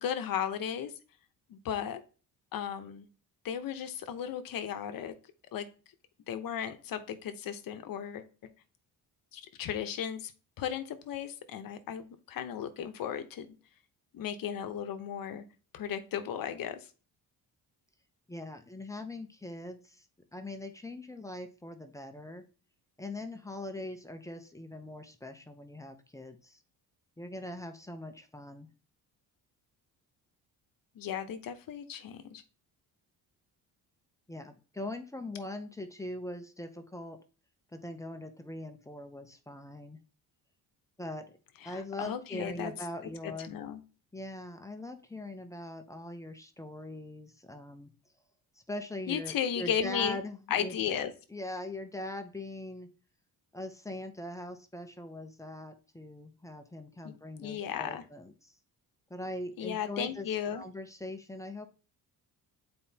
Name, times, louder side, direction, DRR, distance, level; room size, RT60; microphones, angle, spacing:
voice 1, 0.0-0.9 1.5-2.0 2.5-3.1 3.4-5.1 5.5-5.7 6.3-8.3 9.3-10.3 10.6-13.6 14.1-15.5 15.7-16.9 30.9-32.4 41.6-42.7 43.2-43.8 49.1-50.2 50.5-51.1 57.0-57.1 57.4-58.0 59.6-60.6, left 9 dB, 60° left, 9 dB, 0.9 m, -35 dB
voice 2, 18.3-20.0 20.3-22.4 23.0-26.6 27.2-28.7 34.3-37.2 37.7-40.0 41.0-41.4 41.6-43.5 44.1-47.9 48.7-50.7 51.3-52.9 53.5-58.5 59.1-60.3 60.5-61.7, left 1 dB, 10° left, 6 dB, 0.6 m, -41 dB
8.5 x 4.3 x 2.8 m, 0.35 s
cardioid pair, 130°, 38 cm